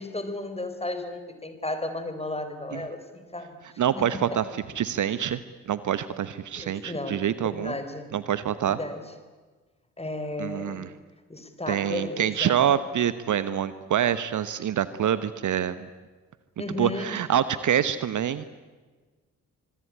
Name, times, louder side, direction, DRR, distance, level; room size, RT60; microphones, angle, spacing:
voice 1, 0.0-4.4 6.6-8.1 8.7-9.0 10.0-10.9 11.3-12.6 16.6-17.1, left 2 dB, 15° left, 9 dB, 4.5 m, -34 dB
voice 2, 3.8-5.4 5.7-7.7 8.1-8.8 10.4-10.9 11.7-15.9 16.8-18.4, right 9 dB, 45° right, 15 dB, 1.1 m, -26 dB
25.5 x 23.5 x 9.8 m, 1.4 s
figure-of-eight pair, 40°, 41 cm